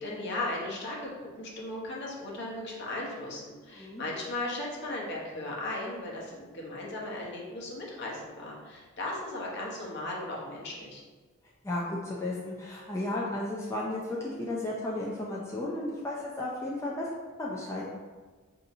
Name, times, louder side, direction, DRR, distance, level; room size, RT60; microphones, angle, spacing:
voice 1, 0.0-11.0, left 2 dB, 55° left, -3 dB, 0.9 m, -36 dB
voice 2, 3.7-4.0 11.6-17.1 17.4-17.9, left 1 dB, 15° left, -5 dB, 0.4 m, -34 dB
5.0 x 2.7 x 2.6 m, 1.4 s
head